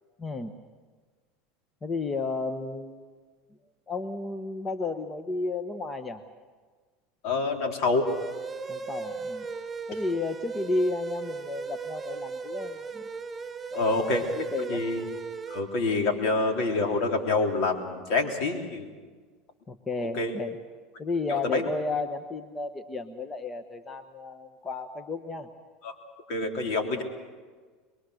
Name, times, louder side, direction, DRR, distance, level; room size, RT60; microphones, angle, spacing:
voice 1, 0.2-0.5 1.8-3.2 3.9-6.2 8.7-9.5 9.9-13.0 13.7-14.8 19.7-20.6 21.0-25.5, left 3 dB, 20° left, 8 dB, 1.2 m, -33 dB
voice 2, 7.2-8.1 13.7-14.2 14.7-15.0 15.5-18.9 20.1-20.3 21.3-21.7 25.8-25.9 26.3-27.0, left 3 dB, 60° left, 2 dB, 3.7 m, -26 dB
sound 1, 8.1-15.6, right 4 dB, 20° right, 3.7 m, -37 dB
24.0 x 22.5 x 6.5 m, 1.5 s
supercardioid pair, 115°, 0 cm